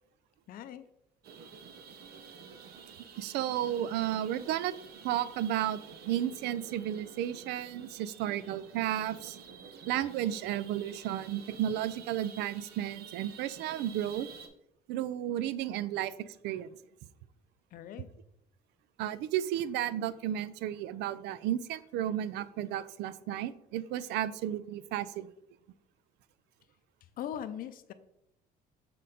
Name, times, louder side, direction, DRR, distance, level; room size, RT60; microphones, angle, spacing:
voice 1, 0.5-0.9 17.7-18.1 27.2-27.9, left 10 dB, 60° left, 12 dB, 0.5 m, -40 dB
sound 1, 1.2-14.5, right 6 dB, 65° right, 0.8 m, -50 dB
voice 2, 3.2-4.7 5.0-9.4 9.9-14.3 14.9-16.7 19.0-25.3, right 11 dB, 85° right, 16 dB, 0.4 m, -33 dB
6.6 x 3.8 x 4.0 m, 0.79 s
cardioid pair, 110°, 17 cm